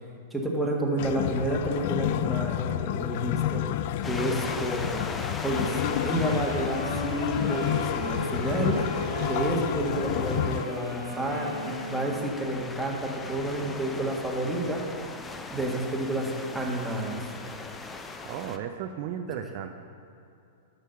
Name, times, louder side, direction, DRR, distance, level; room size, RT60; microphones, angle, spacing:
voice 1, 0.3-3.7 4.1-5.1 5.4-5.8 6.0-8.8 9.2-14.8 15.5-17.3, right 1 dB, ahead, -3 dB, 1.8 m, -30 dB
sound 1, 1.0-10.6, left 13 dB, 50° left, 0.3 m, -30 dB
sound 2, 4.0-18.6, left 3 dB, 15° left, 0.7 m, -39 dB
sound 3, 5.4-12.5, left 1 dB, 75° left, 2.8 m, -36 dB
voice 2, 18.2-19.7, right 9 dB, 50° right, 5 dB, 0.6 m, -34 dB
11.0 x 6.5 x 5.7 m, 2.6 s
hypercardioid pair, 105°, 0 cm